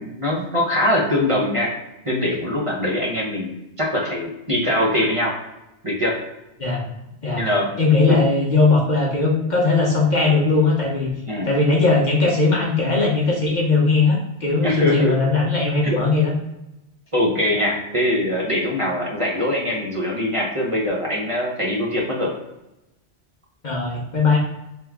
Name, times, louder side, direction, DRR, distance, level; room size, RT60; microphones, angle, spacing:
voice 1, 0.0-1.7 2.0-5.3 5.8-6.2 7.3-7.7 8.1-8.2 11.3-11.5 14.6-15.2 15.8-16.0 17.1-22.3, left 1 dB, 30° right, -4 dB, 0.9 m, -22 dB
voice 2, 7.8-11.1 11.4-16.3 23.6-24.4, left 3 dB, 50° left, -2 dB, 0.8 m, -19 dB
3.5 x 3.0 x 3.5 m, 0.93 s
omnidirectional pair, 1.1 m